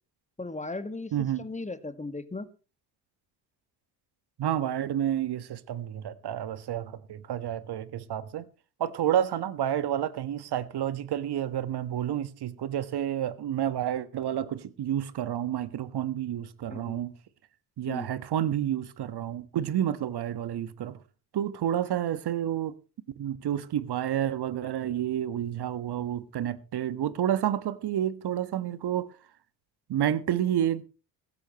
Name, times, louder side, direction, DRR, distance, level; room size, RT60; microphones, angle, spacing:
voice 1, 0.4-2.5 16.7-17.0 17.9-18.1, left 3 dB, 15° left, 1.7 m, -37 dB
voice 2, 1.1-1.4 4.4-8.5 8.8-17.1 17.8-21.0 21.3-22.8 23.2-29.1 29.9-30.8, right 10 dB, 50° right, 1.5 m, -30 dB
16.5 x 15.5 x 3.1 m
hypercardioid pair, 55°, 49 cm